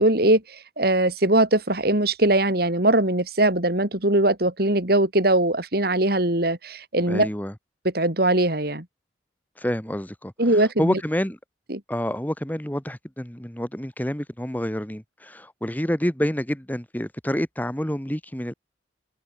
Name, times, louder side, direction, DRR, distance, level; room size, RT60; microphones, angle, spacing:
voice 1, 0.0-7.3 7.9-8.9 10.4-11.0 11.7-11.8, right 1 dB, 55° right, 3.5 m, -21 dB
voice 2, 7.1-7.5 9.6-11.4 11.9-18.5, equal, 10° left, 1.7 m, -28 dB
head